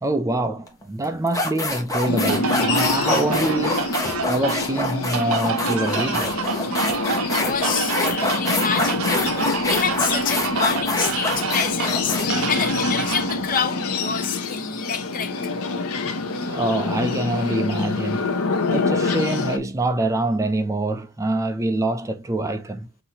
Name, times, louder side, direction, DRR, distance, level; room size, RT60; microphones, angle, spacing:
voice 1, 0.0-3.9 4.3-6.4 16.5-18.3 18.7-22.9, right 2 dB, 15° right, 0.3 m, -25 dB
sound 1, 0.7-0.8 1.3-13.6, left 2 dB, 15° left, 0.9 m, -26 dB
sound 2, 2.0-19.6, left 3 dB, 75° left, 0.7 m, -26 dB
sound 3, 2.3-13.4, right 6 dB, 70° right, 0.6 m, -29 dB
voice 2, 7.2-15.5, left 6 dB, 40° left, 0.5 m, -28 dB
5.7 x 2.7 x 2.8 m
head